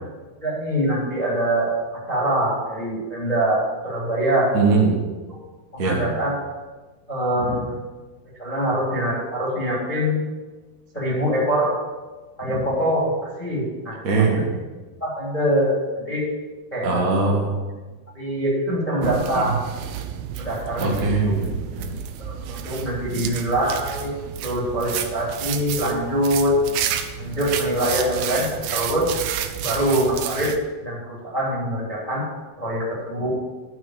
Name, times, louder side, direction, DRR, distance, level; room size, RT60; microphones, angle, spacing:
voice 1, 0.4-4.5 5.7-6.3 7.1-7.8 8.4-10.2 10.9-11.8 12.4-14.0 14.3-14.5 15.0-16.2 16.7-17.3 18.1-19.7 20.4-21.3 22.2-24.1 24.4-26.5 27.2-29.1 29.6-30.5 30.8-32.2 32.6-33.3, right 1 dB, 10° left, -5 dB, 2.6 m, -24 dB
voice 2, 4.5-5.0 5.8-6.0 7.5-7.6 12.4-12.6 14.0-14.5 16.8-17.6 19.3-19.5 20.8-21.9 23.1-23.3, right 4 dB, 35° right, -3 dB, 1.6 m, -21 dB
sound 1, 19.0-30.6, right 9 dB, 80° right, 2.5 m, -30 dB
12.0 x 6.2 x 6.6 m, 1.3 s
omnidirectional pair, 4.4 m